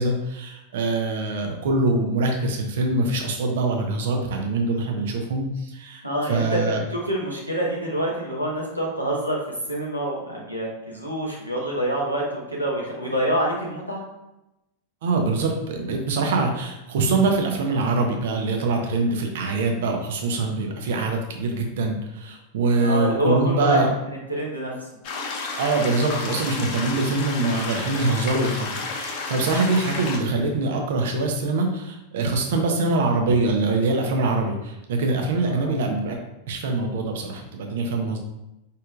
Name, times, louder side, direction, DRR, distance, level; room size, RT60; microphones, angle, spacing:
voice 1, 0.0-6.8 15.0-23.9 25.6-36.2 36.5-38.2, right 3 dB, 55° right, 3 dB, 0.9 m, -24 dB
voice 2, 6.0-9.4 9.7-14.0 22.8-24.7 35.4-35.8, right 1 dB, 90° right, -4 dB, 1.2 m, -26 dB
sound 1, 25.0-30.2, left 4 dB, 45° left, 0.9 m, -31 dB
5.1 x 4.2 x 2.5 m, 0.92 s
figure-of-eight pair, 90°, 0 cm